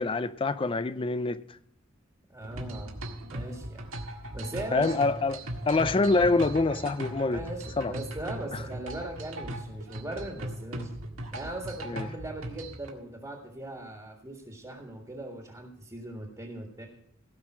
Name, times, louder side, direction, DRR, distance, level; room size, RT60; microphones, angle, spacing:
voice 1, 0.0-1.4 4.7-7.4 7.8-7.9 11.8-12.1, left 3 dB, 25° left, 0.4 m, -26 dB
voice 2, 2.3-3.0 3.3-5.1 7.2-10.9 11.3-16.9, right 2 dB, 15° right, 1.7 m, -39 dB
sound 1, 2.4-12.9, right 1 dB, 90° right, 1.8 m, -39 dB
16.5 x 5.6 x 6.1 m
head